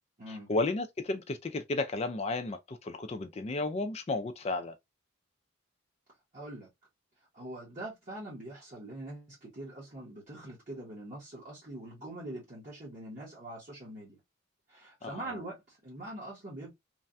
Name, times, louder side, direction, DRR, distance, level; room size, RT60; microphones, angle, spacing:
voice 1, 0.3-4.7 15.0-15.2, left 2 dB, 30° left, 0.3 m, -33 dB
voice 2, 6.3-6.7 7.3-14.2 14.7-16.7, right 1 dB, 40° right, 1.2 m, -43 dB
3.2 x 2.2 x 2.5 m
head